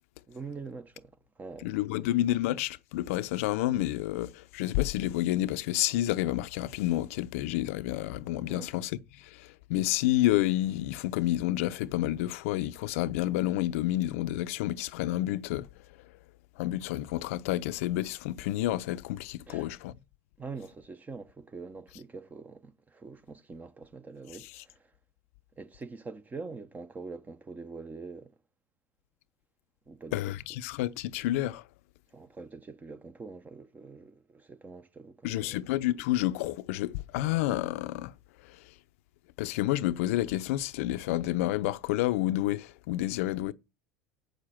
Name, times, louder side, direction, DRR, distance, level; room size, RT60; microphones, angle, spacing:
voice 1, 0.3-2.1 8.5-8.7 19.5-19.7 20.4-24.9 25.5-28.3 29.9-30.4 32.1-35.6, right 4 dB, 20° right, 1.0 m, -44 dB
voice 2, 1.6-8.9 9.2-15.7 16.6-19.9 30.1-31.6 35.2-38.1 38.5-38.6 39.4-43.5, left 15 dB, 75° left, 0.6 m, -29 dB
8.1 x 6.5 x 7.5 m
hypercardioid pair, 90°, 8 cm